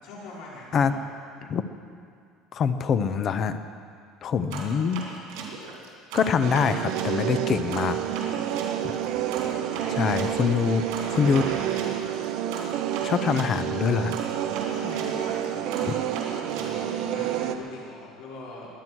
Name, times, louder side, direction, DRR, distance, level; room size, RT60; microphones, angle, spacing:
voice 1, 0.0-1.0 14.7-18.7, left 2 dB, 75° left, -6 dB, 5.3 m, -42 dB
voice 2, 2.5-3.6 4.2-5.1 6.1-8.0 9.9-10.8 11.1-11.5 13.0-14.2, left 6 dB, 30° left, 11 dB, 0.6 m, -24 dB
sound 1, 4.5-7.1 7.7-13.5 14.1-17.3, right 4 dB, 80° right, 3.1 m, -38 dB
sound 2, 6.4-17.6, right 11 dB, 50° right, 0.7 m, -29 dB
21.5 x 9.4 x 6.2 m, 2.3 s
cardioid pair, 175°, 0 cm